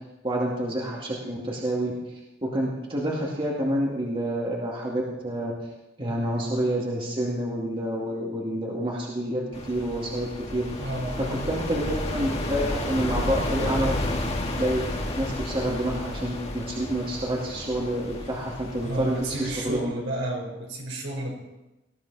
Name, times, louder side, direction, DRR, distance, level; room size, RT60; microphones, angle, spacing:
voice 1, 0.2-5.5 6.0-10.9 11.2-14.1 14.6-20.0, right 1 dB, 30° right, -3 dB, 2.4 m, -28 dB
sound 1, 9.5-19.8, left 1 dB, 35° left, 2.1 m, -32 dB
voice 2, 10.8-11.4 18.8-21.3, right 1 dB, 70° right, 0 dB, 4.8 m, -31 dB
20.0 x 14.0 x 4.2 m, 1.0 s
head